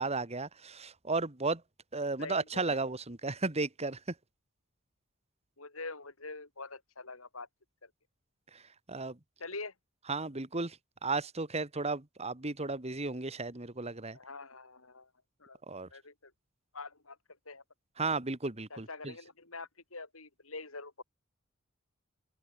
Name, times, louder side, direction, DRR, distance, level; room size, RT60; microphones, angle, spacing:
voice 1, 0.0-1.6 1.9-4.0 8.5-8.6 8.9-9.2 10.1-10.8 11.0-14.2 15.7-15.9 18.0-19.1, right 3 dB, 30° right, 1.9 m, -34 dB
voice 2, 2.2-2.8 5.6-7.5 7.8-7.9 9.4-9.7 14.1-15.1 15.4-15.6 15.9-16.3 16.7-17.2 17.5-17.6 18.7-21.0, left 3 dB, 75° left, 5.7 m, -45 dB
open air
head